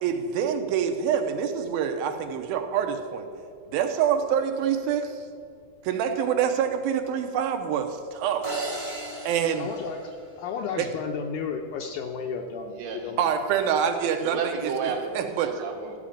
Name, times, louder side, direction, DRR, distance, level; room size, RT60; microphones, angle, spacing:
voice 1, 0.0-3.3 3.7-5.2 5.8-8.5 9.3-9.7 10.8-10.9 13.2-14.4 15.1-15.5, right 8 dB, 85° right, 6 dB, 2.7 m, -26 dB
sound 1, 8.4-10.8, right 2 dB, 25° right, 1.0 m, -36 dB
voice 2, 9.6-10.1 10.4-12.8 13.0-13.3, left 6 dB, 80° left, 3 dB, 1.9 m, -33 dB
voice 3, 12.8-13.1 14.2-16.0, right 6 dB, 70° right, 0 dB, 2.9 m, -31 dB
13.5 x 5.1 x 8.8 m, 2.4 s
omnidirectional pair, 4.2 m